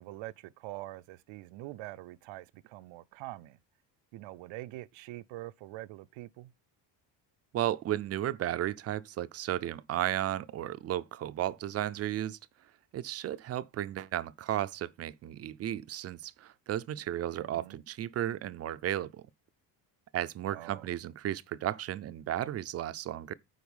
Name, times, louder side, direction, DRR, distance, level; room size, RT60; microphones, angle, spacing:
voice 1, 0.0-3.6 4.1-6.5 17.3-17.8 20.5-20.9, right 17 dB, 85° right, 0.7 m, -44 dB
voice 2, 7.5-12.4 12.9-19.2 20.1-23.3, right 12 dB, 35° right, 0.4 m, -34 dB
9.6 x 4.1 x 5.3 m
cardioid pair, 165°, 45 cm